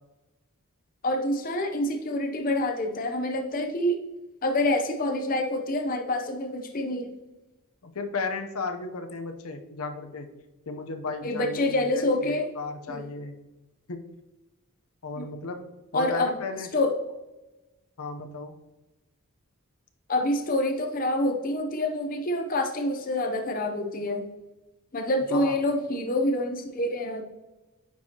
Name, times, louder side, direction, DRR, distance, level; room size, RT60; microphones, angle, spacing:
voice 1, 1.0-4.0 4.4-7.1 11.2-12.5 12.9-13.0 15.2-15.3 15.9-16.3 16.7-16.9 20.1-24.2 24.9-27.2, left 1 dB, 40° left, 5 dB, 0.6 m, -27 dB
voice 2, 7.8-10.3 10.7-13.3 13.9-14.1 15.0-15.7 15.9-16.7 18.0-18.6 25.3-25.6, left 3 dB, 85° left, 6 dB, 0.7 m, -34 dB
9.9 x 4.7 x 2.8 m, 1.0 s
head